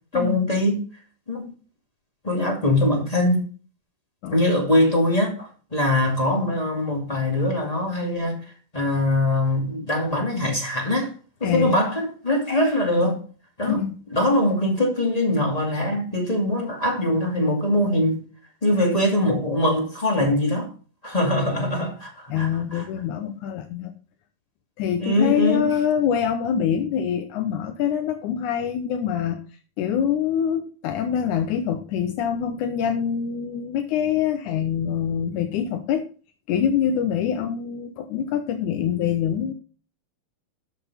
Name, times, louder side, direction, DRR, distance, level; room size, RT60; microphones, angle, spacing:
voice 1, 0.1-0.8 1.3-1.5 2.2-3.4 4.3-8.4 8.7-11.1 11.4-13.2 13.6-13.8 14.1-18.2 18.6-20.7 21.0-22.9 25.0-25.7, left 1 dB, 15° left, 1.8 m, -22 dB
voice 2, 11.4-11.8 13.7-13.9 22.3-23.9 24.8-29.4 29.8-36.0 36.5-39.5, left 8 dB, 75° left, 2.0 m, -25 dB
12.5 x 6.2 x 4.1 m
omnidirectional pair, 4.0 m